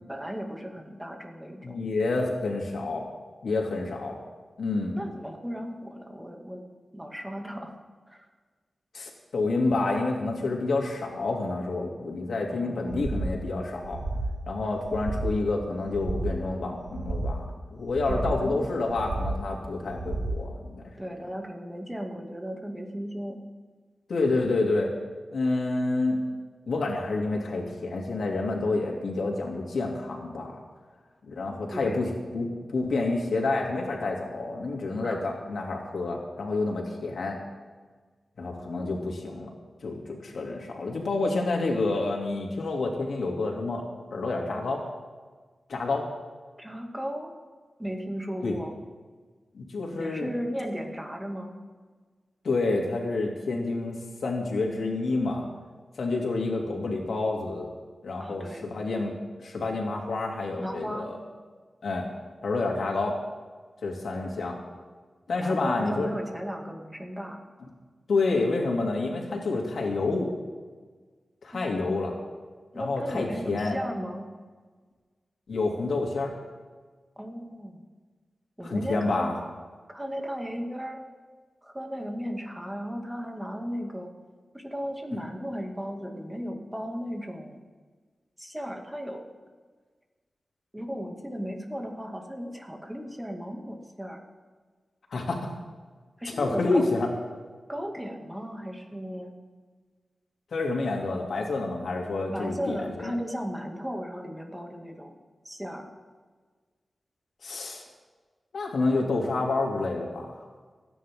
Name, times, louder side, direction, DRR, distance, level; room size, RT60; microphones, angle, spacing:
voice 1, 0.1-1.9 5.0-6.6 6.9-7.7 8.1-8.3 12.5-13.0 18.1-18.7 21.0-23.4 31.7-32.0 35.0-35.3 46.6-47.3 47.8-48.7 49.9-51.6 58.2-58.6 60.6-61.1 65.4-67.4 71.5-72.0 72.7-74.3 77.2-77.8 78.6-79.3 79.9-81.0 81.6-84.1 84.5-87.6 88.4-89.2 90.7-94.2 96.2-97.0 97.7-99.3 102.3-105.2 105.4-105.9, equal, 10° right, 2 dB, 2.4 m, -36 dB
voice 2, 1.6-3.1 3.4-4.2 4.6-5.0 8.9-14.0 14.5-17.4 17.7-20.8 24.1-24.9 25.3-26.2 26.7-30.6 31.2-32.1 32.3-37.4 38.4-39.5 39.8-43.8 44.1-44.8 45.7-46.1 48.4-48.6 49.5-50.3 52.4-55.5 56.0-57.7 58.0-61.2 61.8-62.1 62.4-63.2 63.8-64.6 65.3-66.1 68.1-70.3 71.4-72.1 72.7-73.8 75.5-76.3 78.6-79.3 95.1-95.5 96.4-97.1 100.5-103.2 107.4-107.8 108.5-110.3, left 3 dB, 80° left, 0 dB, 2.8 m, -28 dB
sound 1, 12.9-13.4 13.8-14.4 14.8-15.4 15.8-16.4 16.8-17.4 17.8-18.4 18.8-19.4 19.8-20.4, right 2 dB, 65° right, 1.2 m, -32 dB
30.0 x 10.0 x 3.8 m, 1.4 s
wide cardioid pair, 90°, 0 cm